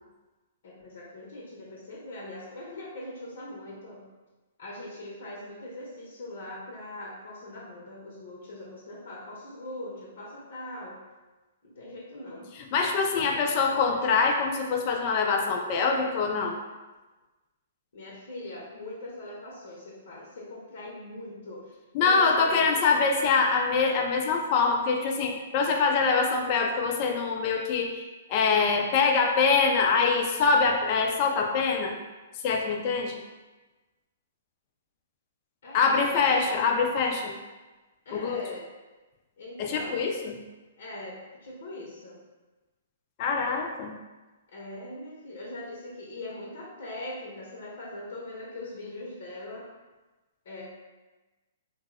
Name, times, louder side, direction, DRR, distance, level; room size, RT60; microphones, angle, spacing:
voice 1, 0.6-4.0 4.6-11.0 11.6-12.5 13.1-13.5 17.9-22.8 35.6-36.7 38.0-38.7 39.4-40.1 40.8-42.2 44.5-49.7 50.4-50.6, left 1 dB, 70° left, -4 dB, 0.7 m, -41 dB
voice 2, 12.7-16.6 21.9-32.0 32.4-33.2 35.7-37.4 38.1-38.5 39.6-40.4 43.2-43.9, left 4 dB, 40° left, 2 dB, 0.4 m, -24 dB
2.7 x 2.0 x 3.6 m, 1.2 s
hypercardioid pair, 140°, 0 cm